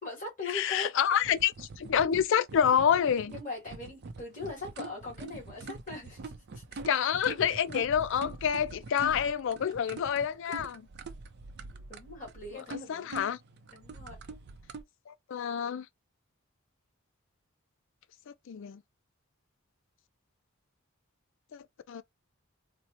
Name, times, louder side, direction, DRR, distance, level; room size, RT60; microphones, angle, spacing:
voice 1, 0.0-0.9 3.1-6.8 11.9-13.1 13.7-14.2, left 3 dB, 40° left, 2.4 m, -41 dB
voice 2, 0.5-3.3 6.9-10.8 12.7-13.4 15.1-15.9 18.5-18.8 21.5-22.0, left 8 dB, 65° left, 0.4 m, -28 dB
sound 1, 1.2-14.8, right 3 dB, 55° right, 0.5 m, -44 dB
4.1 x 2.1 x 2.8 m
head